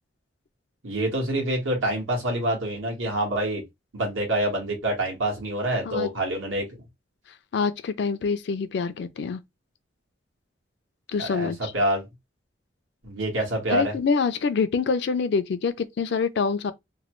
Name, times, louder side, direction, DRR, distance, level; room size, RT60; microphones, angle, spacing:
voice 1, 0.8-3.6 3.9-6.8 11.2-12.1 13.0-13.9, right 1 dB, 85° right, 1.4 m, -26 dB
voice 2, 7.5-9.4 11.1-11.7 13.7-16.7, left 5 dB, 60° left, 0.4 m, -26 dB
3.0 x 2.2 x 3.0 m
head